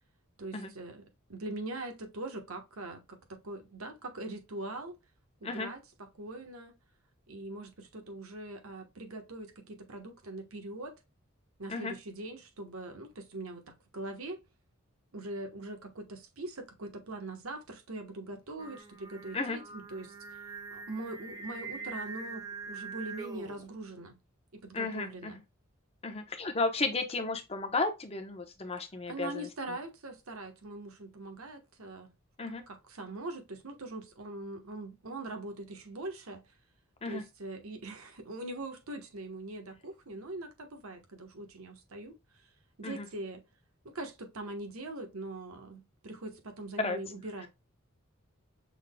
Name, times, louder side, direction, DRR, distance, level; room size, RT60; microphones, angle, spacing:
voice 1, 0.4-1.0 1.3-4.9 5.4-6.7 7.3-10.9 11.6-14.4 15.1-20.1 20.7-24.2 24.5-25.4 29.1-32.1 32.7-36.4 37.0-42.1 42.8-43.4 43.9-47.5, right 2 dB, 90° right, 1.2 m, -42 dB
Singing, 18.6-23.7, right 4 dB, 20° right, 0.6 m, -43 dB
voice 2, 24.7-25.3 26.0-29.3 32.4-32.6 37.0-37.2 42.8-43.0 46.8-47.0, left 3 dB, 30° left, 0.8 m, -33 dB
6.1 x 3.7 x 2.2 m
head